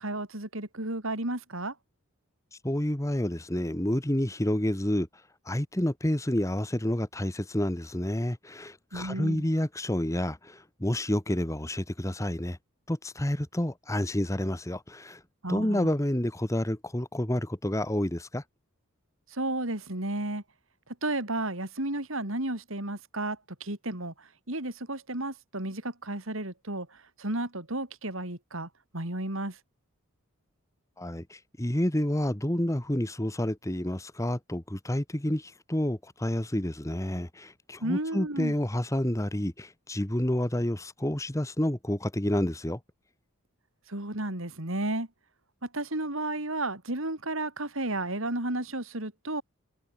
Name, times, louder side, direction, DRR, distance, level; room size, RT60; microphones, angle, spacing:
voice 1, 0.0-1.7 8.9-9.5 15.4-15.9 19.3-20.4 21.0-29.6 37.8-38.5 43.9-45.1 45.6-49.4, right 2 dB, 65° right, 3.7 m, -33 dB
voice 2, 2.6-5.1 5.5-12.6 12.9-15.2 15.5-18.4 31.0-42.8, left 1 dB, 15° left, 1.2 m, -29 dB
head